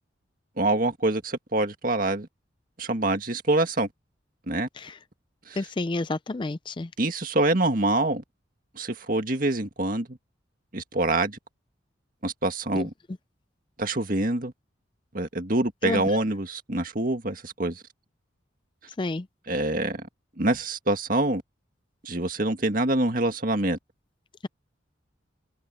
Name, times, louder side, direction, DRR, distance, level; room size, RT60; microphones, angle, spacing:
voice 1, 0.6-2.3 2.8-3.9 4.5-4.7 5.5-5.6 7.0-8.2 8.8-10.2 10.7-11.4 12.2-12.9 13.8-14.5 15.1-17.8 19.5-20.0 20.4-21.4 22.0-23.8, right 2 dB, 45° right, 1.9 m, -25 dB
voice 2, 5.6-6.9 12.7-12.8 15.8-16.0 19.0-19.3, left 2 dB, 25° left, 0.4 m, -29 dB
open air
head